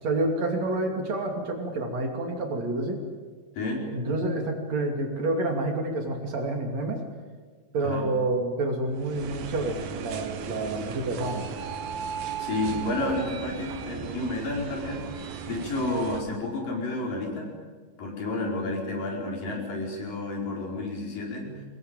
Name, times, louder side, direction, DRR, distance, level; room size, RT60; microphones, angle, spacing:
voice 1, 0.0-3.0 3.9-7.0 7.7-11.5 21.5-21.6, right 2 dB, 50° right, 3 dB, 3.8 m, -28 dB
sound 1, 9.0-16.2, right 7 dB, 85° right, 3.3 m, -36 dB
voice 2, 12.4-17.5 18.0-21.5, left 2 dB, 70° left, 0 dB, 6.6 m, -31 dB
24.0 x 20.5 x 9.0 m, 1.5 s
omnidirectional pair, 4.1 m